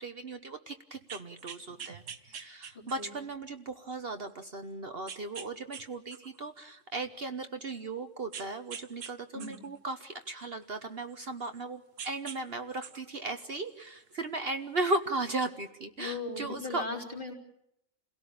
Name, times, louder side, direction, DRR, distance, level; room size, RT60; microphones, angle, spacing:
voice 1, 0.0-16.8, right 2 dB, 50° right, 7 dB, 1.3 m, -36 dB
sound 1, 0.9-3.2 3.8-3.9 5.1-5.8 6.1-7.4 8.3-9.1 9.4-11.6 12.0-12.4 12.7-14.1 15.1-15.2, right 7 dB, 70° right, 1.5 m, -45 dB
voice 2, 2.7-3.2 9.3-9.6 16.0-17.3, left 3 dB, 35° left, -1 dB, 4.1 m, -38 dB
28.5 x 17.5 x 8.7 m, 0.79 s
omnidirectional pair, 1.4 m